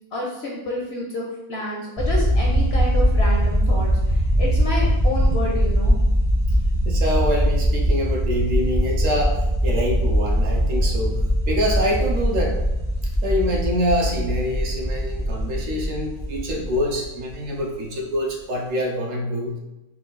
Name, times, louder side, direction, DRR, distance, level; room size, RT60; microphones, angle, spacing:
voice 1, 0.1-6.0, left 1 dB, 60° left, -2 dB, 0.7 m, -29 dB
sound 1, 2.0-17.6, equal, 30° right, 0.7 m, -21 dB
voice 2, 6.8-11.2 11.5-12.6 13.2-19.6, equal, 65° right, -1 dB, 1.0 m, -25 dB
4.4 x 2.3 x 3.8 m, 0.98 s
omnidirectional pair, 1.6 m